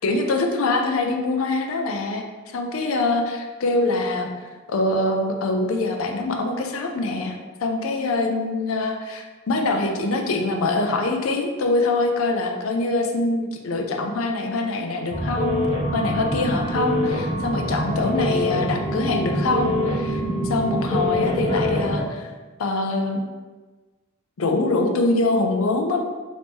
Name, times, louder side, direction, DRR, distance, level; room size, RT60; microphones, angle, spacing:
voice 1, 0.0-2.2 2.5-4.3 4.7-15.6 15.9-20.2 20.5-22.3 22.6-23.2 24.4-26.0, left 2 dB, 85° left, 3 dB, 0.5 m, -24 dB
sound 1, 15.1-22.0, left 1 dB, 20° left, 0.6 m, -24 dB
3.0 x 2.7 x 3.5 m, 1.3 s
head